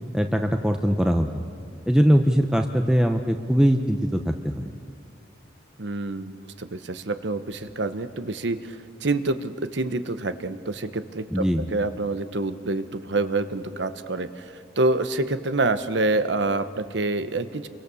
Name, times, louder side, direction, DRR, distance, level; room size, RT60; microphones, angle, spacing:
voice 1, 0.1-1.3 1.9-4.7 11.3-11.7, equal, 5° right, 4 dB, 0.7 m, -21 dB
voice 2, 5.8-17.7, right 2 dB, 65° right, 11 dB, 1.0 m, -27 dB
28.5 x 24.0 x 7.0 m, 2.3 s
head